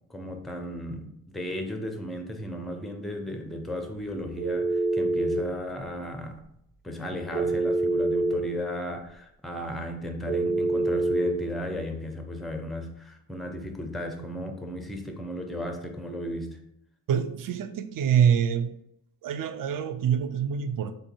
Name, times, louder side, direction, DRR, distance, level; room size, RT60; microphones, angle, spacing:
voice 1, 0.0-6.4 6.8-16.6, equal, ahead, 0.5 m, -35 dB
Telephone, 4.4-5.4 7.3-8.3 10.3-11.3, right 2 dB, 90° right, 1.1 m, -25 dB
voice 2, 17.1-18.8 19.2-20.9, right 8 dB, 50° right, 0.4 m, -25 dB
3.7 x 2.6 x 2.5 m
supercardioid pair, 40°, 47 cm